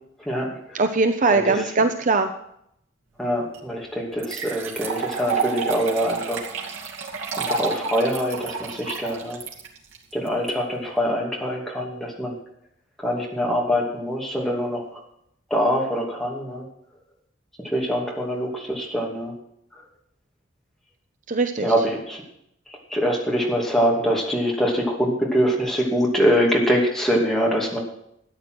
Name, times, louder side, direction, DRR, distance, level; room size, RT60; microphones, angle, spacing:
voice 1, 0.2-0.8 1.3-1.5 3.2-6.5 7.4-9.4 10.1-12.4 13.0-14.8 15.5-16.6 17.6-19.3 19.7-19.8 21.6-22.2 22.7-27.8, equal, ahead, -2 dB, 2.6 m, -24 dB
voice 2, 0.7-2.3 21.3-21.7, right 3 dB, 40° right, 8 dB, 0.7 m, -21 dB
sound 1, 3.5-3.6 4.2-10.5, right 5 dB, 80° right, 2.5 m, -30 dB
13.5 x 9.2 x 6.2 m, 0.75 s
head